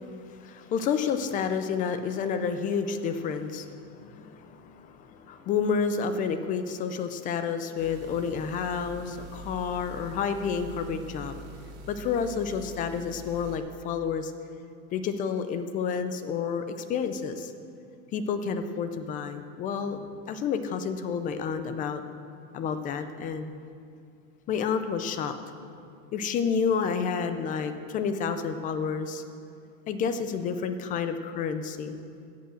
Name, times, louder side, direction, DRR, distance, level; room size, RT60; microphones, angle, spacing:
voice 1, 0.3-11.4 11.9-14.3 14.9-17.5 18.1-20.0 20.3-22.0 22.5-23.5 24.5-25.4 26.1-29.2 29.9-32.0, left 6 dB, 20° left, 9 dB, 0.4 m, -30 dB
sound 1, 7.8-13.6, right 2 dB, 40° right, 1.8 m, -45 dB
15.5 x 5.6 x 7.6 m, 2.4 s
supercardioid pair, 155°, 39 cm